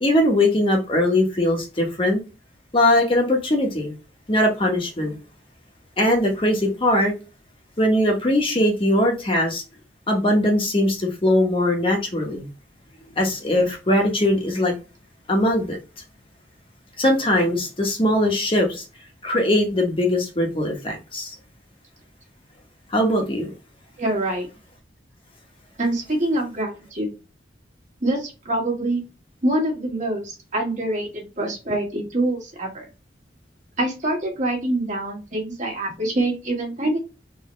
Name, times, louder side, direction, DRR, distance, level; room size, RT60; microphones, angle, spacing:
voice 1, 0.0-2.2 2.7-3.9 4.3-5.2 6.0-7.1 7.8-9.6 10.1-12.5 13.2-14.7 15.3-15.8 17.0-18.8 19.2-21.3 22.9-23.5, left 1 dB, 30° left, 1.0 m, -20 dB
voice 2, 24.0-24.5 25.8-27.2 28.0-29.0 29.4-32.8 33.8-37.0, right 1 dB, 45° right, 1.5 m, -25 dB
3.9 x 2.8 x 3.1 m
head